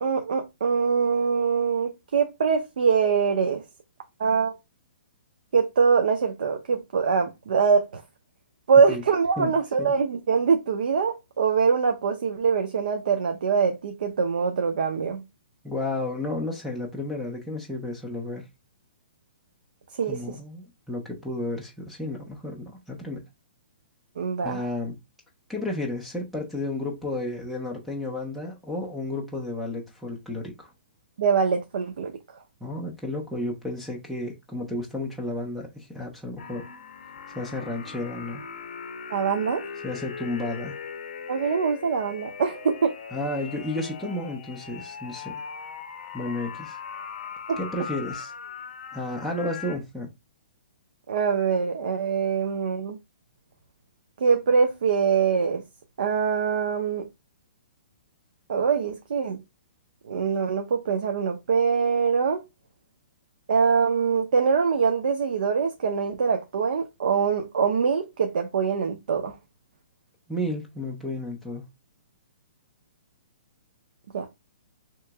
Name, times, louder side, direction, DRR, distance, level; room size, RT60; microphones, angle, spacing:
voice 1, 0.0-3.6 4.2-4.5 5.5-8.0 8.7-15.2 20.0-20.2 24.2-24.7 31.2-32.1 39.1-39.6 41.3-42.9 47.5-47.6 51.1-53.0 54.2-55.6 56.0-57.1 58.5-59.4 60.0-62.4 63.5-69.4 74.1-74.3, right 5 dB, 55° right, 0.6 m, -23 dB
voice 2, 15.6-18.4 20.1-23.2 24.4-24.9 25.5-30.7 32.6-36.6 37.3-38.4 39.8-40.8 43.1-45.3 46.1-46.8 47.6-48.3 48.9-50.1 70.3-71.6, left 2 dB, ahead, 0.4 m, -32 dB
sound 1, 36.4-49.8, left 6 dB, 50° left, 0.6 m, -39 dB
3.6 x 2.9 x 3.3 m
hypercardioid pair, 180°, 6 cm